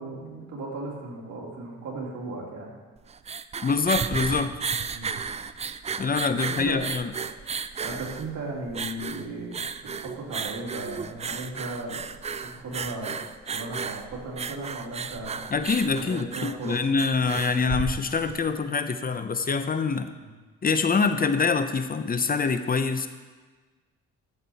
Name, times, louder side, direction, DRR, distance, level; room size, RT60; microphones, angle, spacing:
voice 1, 0.0-2.7 4.9-5.1 6.3-6.8 7.3-7.4 7.8-9.6 9.9-12.0 12.5-13.2 13.5-15.4 15.9-16.8 20.2-20.3, right 2 dB, 70° right, -2 dB, 2.7 m, -36 dB
sound 1, 3.0-18.4, right 6 dB, 20° right, 0.4 m, -34 dB
voice 2, 3.6-4.5 6.0-7.1 15.5-20.1 20.6-23.1, left 4 dB, 30° left, 10 dB, 0.7 m, -25 dB
12.5 x 7.5 x 4.2 m, 1.3 s
cardioid pair, 90°, 30 cm